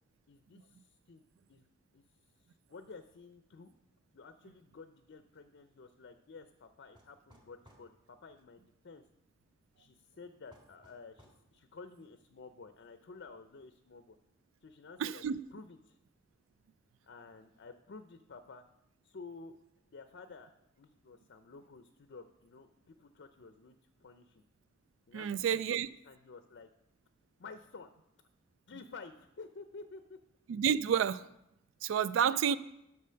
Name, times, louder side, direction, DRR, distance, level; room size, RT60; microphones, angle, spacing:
voice 1, 0.3-1.2 1.5-2.0 2.5-3.7 4.1-9.0 9.8-14.2 14.6-15.2 15.5-16.0 17.0-18.6 19.0-19.6 19.9-24.4 25.1-25.8 26.0-26.7 27.4-27.9 28.7-30.2 32.2-32.6, left 4 dB, 60° left, 9 dB, 0.5 m, -52 dB
sound 1, 7.0-7.9 10.5-11.4, equal, 25° right, 1.7 m, -61 dB
voice 2, 15.0-15.4 25.1-25.9 30.5-31.3 31.8-32.6, right 8 dB, 75° right, 18 dB, 0.3 m, -30 dB
8.4 x 6.7 x 5.6 m, 0.85 s
head